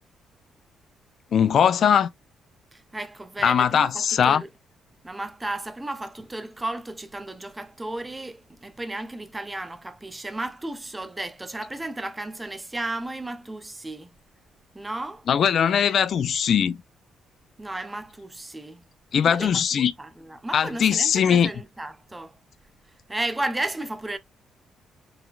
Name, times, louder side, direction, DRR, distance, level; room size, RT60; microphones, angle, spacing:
voice 1, 1.3-2.1 3.4-4.4 15.3-16.8 19.1-19.9 20.5-21.5, left 8 dB, 60° left, 0.4 m, -20 dB
voice 2, 2.7-4.5 5.0-14.1 14.7-15.3 17.6-18.8 19.3-22.4 23.1-24.2, right 2 dB, 15° right, 0.6 m, -34 dB
3.9 x 2.1 x 2.3 m
cardioid pair, 90°, 0 cm